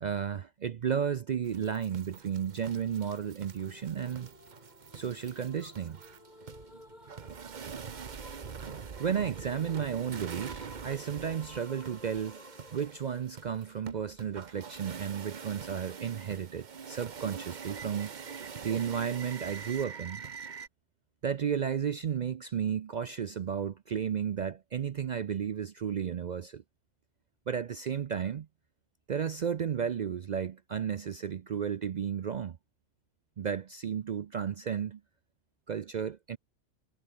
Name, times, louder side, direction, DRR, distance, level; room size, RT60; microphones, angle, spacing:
voice 1, 0.0-4.3 4.9-6.0 9.0-12.4 12.7-18.1 18.6-20.2 21.2-26.6 27.5-28.5 29.1-32.6 33.4-35.0 35.7-36.4, right 8 dB, 60° right, 0.4 m, -33 dB
sound 1, 1.4-20.7, right 6 dB, 40° right, 1.0 m, -44 dB
sound 2, 3.4-14.3, left 1 dB, 35° left, 5.3 m, -54 dB
omnidirectional pair, 1.3 m